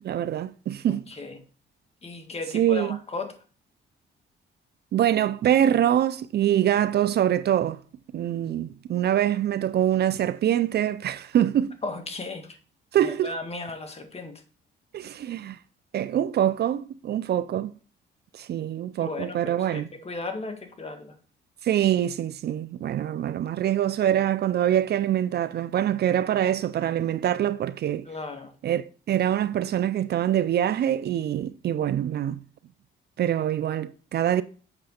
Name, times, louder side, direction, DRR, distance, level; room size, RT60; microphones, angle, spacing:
voice 1, 0.0-1.1 2.5-3.0 4.9-7.8 8.1-11.8 12.9-13.3 14.9-15.6 15.9-17.7 18.3-19.9 21.6-28.1 28.6-32.4 33.2-34.4, right 11 dB, 55° right, 0.4 m, -24 dB
voice 2, 0.9-1.4 2.0-3.3 11.8-12.6 13.0-14.4 19.0-21.2 28.1-28.5, left 3 dB, 30° left, 1.9 m, -35 dB
7.8 x 6.2 x 4.3 m
cardioid pair, 90°, 20 cm